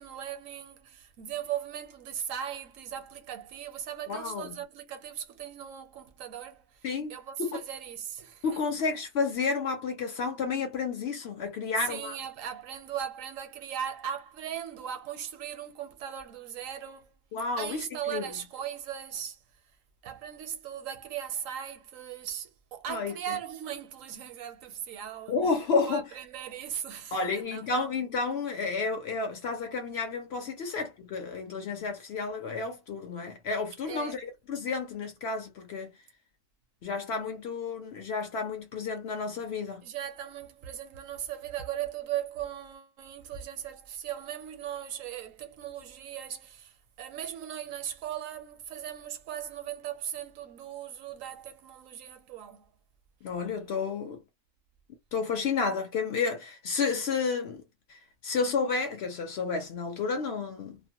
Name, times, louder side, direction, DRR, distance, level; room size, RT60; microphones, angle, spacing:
voice 1, 0.0-8.8 11.8-17.1 17.6-19.4 20.0-25.4 25.8-27.9 31.8-31.9 33.9-34.2 39.8-52.6, right 10 dB, 75° right, 1.0 m, -38 dB
voice 2, 4.1-4.6 6.8-7.6 8.4-12.2 17.3-18.3 22.9-23.4 25.3-26.0 27.1-35.9 36.8-39.9 53.2-54.2 55.1-57.6 57.9-60.8, left 4 dB, 65° left, 0.7 m, -31 dB
2.4 x 2.1 x 2.8 m
omnidirectional pair, 1.4 m